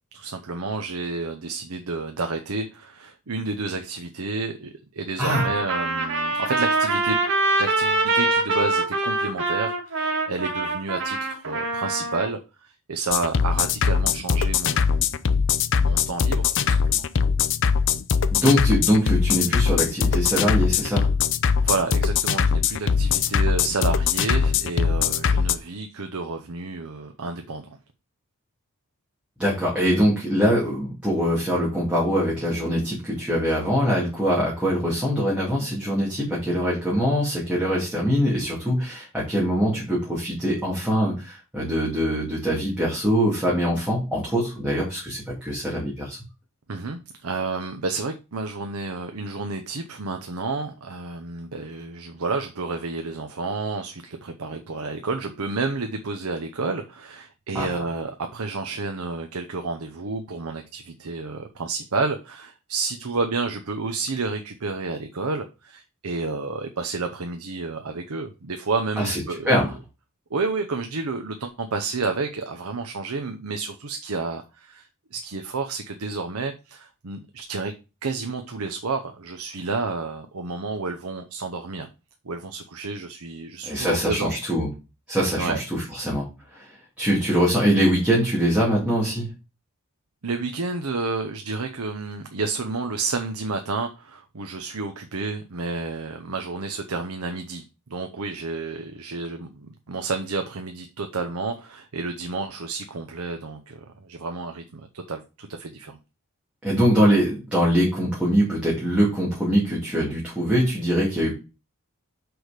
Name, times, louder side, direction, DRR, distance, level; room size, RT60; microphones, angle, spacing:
voice 1, 0.1-7.2 7.6-15.0 15.8-17.1 21.6-27.8 46.7-69.6 70.3-77.7 78.0-81.9 82.2-84.3 85.4-85.6 90.2-97.6 97.9-106.0, right 3 dB, 80° right, 0.8 m, -30 dB
Trumpet, 5.3-12.3, right 2 dB, 60° right, 2.7 m, -24 dB
sound 1, 13.1-25.6, left 6 dB, 60° left, 0.5 m, -21 dB
voice 2, 18.3-21.1 29.4-46.2 57.5-57.7 69.0-69.2 69.5-69.7 83.7-84.7 85.1-86.3 86.5-89.3 106.6-111.3, equal, 5° right, 2.5 m, -23 dB
6.2 x 4.9 x 5.0 m
head